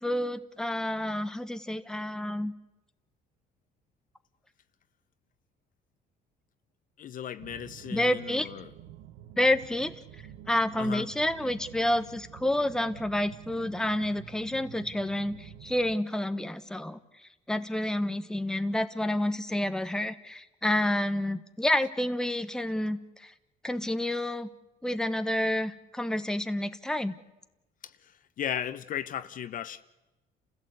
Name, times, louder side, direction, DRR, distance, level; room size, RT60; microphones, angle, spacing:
voice 1, 0.0-2.5 7.9-8.5 9.4-9.9 10.5-17.0 17.5-23.3 23.6-24.5 24.8-27.2, left 1 dB, 5° left, 1.1 m, -29 dB
voice 2, 7.0-8.7 10.8-11.0 28.4-29.8, left 10 dB, 50° left, 0.9 m, -35 dB
sound 1, 7.4-16.0, right 11 dB, 85° right, 1.0 m, -49 dB
29.5 x 15.5 x 8.1 m
cardioid pair, 110°, 17 cm